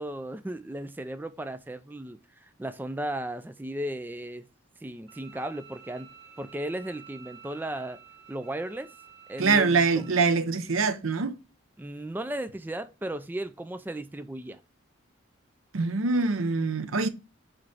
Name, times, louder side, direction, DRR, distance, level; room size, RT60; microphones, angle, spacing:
voice 1, 0.0-4.5 4.8-6.1 6.4-8.0 8.3-8.9 9.3-10.0 11.8-14.6, right 1 dB, 10° right, 0.3 m, -35 dB
Bowed string instrument, 5.1-10.1, right 6 dB, 65° right, 1.4 m, -51 dB
voice 2, 9.4-11.4 15.7-17.1, right 4 dB, 85° right, 0.7 m, -24 dB
6.0 x 3.2 x 4.9 m
head